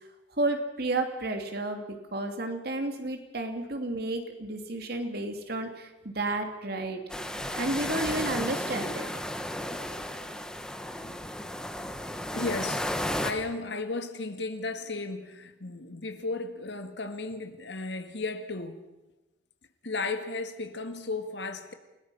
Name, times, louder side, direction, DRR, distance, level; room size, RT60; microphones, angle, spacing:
voice 1, 0.4-7.0 7.3-9.1, right 2 dB, 60° right, 2.8 m, -32 dB
sound 1, 7.1-13.3, left 1 dB, 5° left, 1.6 m, -33 dB
voice 2, 12.3-12.9 13.2-18.8 19.8-21.7, left 3 dB, 75° left, 1.9 m, -34 dB
29.0 x 19.0 x 5.6 m
head